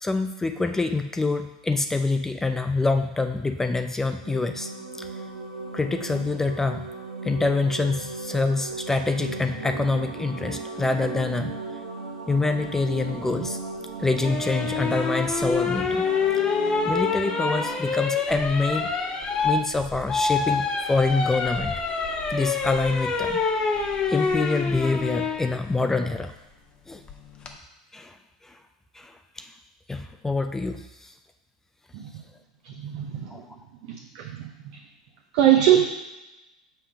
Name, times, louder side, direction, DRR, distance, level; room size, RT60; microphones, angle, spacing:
voice 1, 0.0-4.7 5.0-5.1 5.7-6.9 7.2-11.5 12.3-13.6 14.0-16.1 16.5-16.6 16.8-18.9 19.4-21.8 22.3-23.4 24.1-26.3 26.9-27.0 27.9-28.2 28.4-28.6 28.9-29.5 29.9-31.1 33.3-33.5, left 3 dB, 10° left, 7 dB, 0.3 m, -26 dB
sound 1, 4.1-17.8, right 3 dB, 80° right, 1.5 m, -37 dB
sound 2, 14.2-25.4 27.1-27.5, left 4 dB, 25° left, 0.8 m, -26 dB
voice 2, 32.6-33.4 33.8-34.8 35.3-35.8, right 11 dB, 55° right, 1 dB, 0.7 m, -22 dB
5.6 x 3.5 x 5.7 m, 1.0 s
hypercardioid pair, 95°, 4 cm